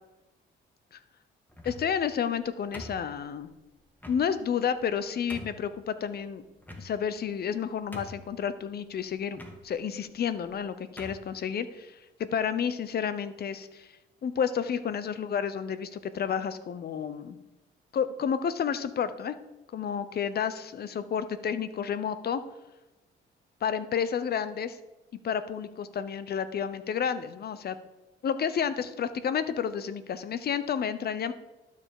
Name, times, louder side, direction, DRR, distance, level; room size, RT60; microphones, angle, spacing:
sound 1, 1.5-2.0 2.7-3.4 4.0-4.2 4.8-4.9 5.3-5.6 6.6-7.2 7.5-7.6 7.9-8.4 9.3-9.6 10.4-10.6 11.0-11.3, left 1 dB, 10° left, 1.7 m, -43 dB
voice 1, 1.6-3.5 4.1-6.4 6.8-13.9 14.2-17.4 17.9-19.4 19.7-22.4 23.6-24.8 25.2-27.8 28.2-31.3, left 7 dB, 50° left, 13 dB, 0.8 m, -31 dB
12.0 x 6.7 x 4.9 m, 1.1 s
cardioid pair, 90°, 20 cm